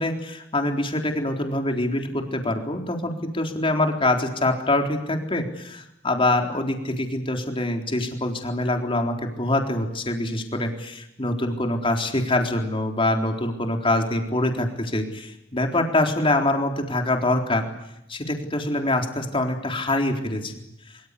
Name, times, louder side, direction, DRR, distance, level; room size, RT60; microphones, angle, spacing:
voice 1, 0.0-17.7 18.1-20.5 20.9-21.0, left 1 dB, 30° left, 3 dB, 4.0 m, -25 dB
24.5 x 24.0 x 8.4 m, 0.82 s
head